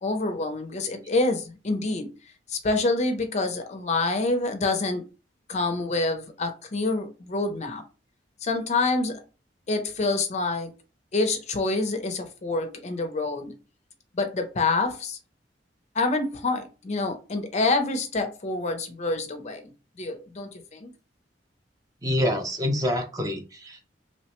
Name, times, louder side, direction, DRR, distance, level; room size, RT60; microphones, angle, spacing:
voice 1, 0.0-2.1 2.5-5.0 5.5-7.8 8.4-9.2 9.7-10.7 11.1-13.5 14.1-15.2 16.0-19.7 20.0-20.9, left 3 dB, 40° left, 0.5 m, -27 dB
voice 2, 22.0-23.8, left 1 dB, 20° right, 0.5 m, -26 dB
3.0 x 2.1 x 2.9 m
head